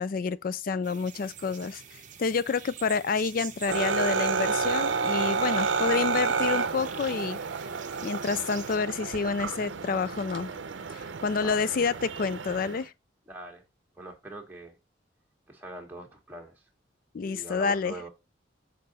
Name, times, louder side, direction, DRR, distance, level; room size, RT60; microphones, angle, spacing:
voice 1, 0.0-1.8 2.2-7.4 8.0-10.5 10.9-12.9 17.1-17.9, left 5 dB, 50° left, 0.4 m, -28 dB
sound 1, 0.8-8.8, right 8 dB, 40° right, 0.7 m, -46 dB
sound 2, 3.7-12.8, right 5 dB, 85° right, 0.6 m, -30 dB
voice 2, 13.3-13.6 14.0-14.8 15.5-16.5 17.2-18.1, right 1 dB, 10° right, 1.4 m, -42 dB
6.6 x 3.9 x 4.1 m
head